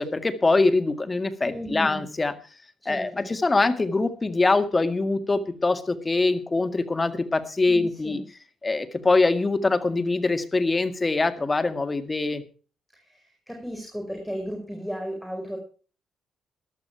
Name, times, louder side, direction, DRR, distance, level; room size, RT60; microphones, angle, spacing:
voice 1, 0.0-2.3 2.9-8.2 8.6-12.4, left 3 dB, 25° left, 10 dB, 1.9 m, -23 dB
voice 2, 1.4-2.0 2.8-3.3 7.7-8.2 12.9-15.6, equal, ahead, 2 dB, 5.0 m, -35 dB
14.5 x 11.5 x 4.5 m, 0.37 s
cardioid pair, 90°, 0 cm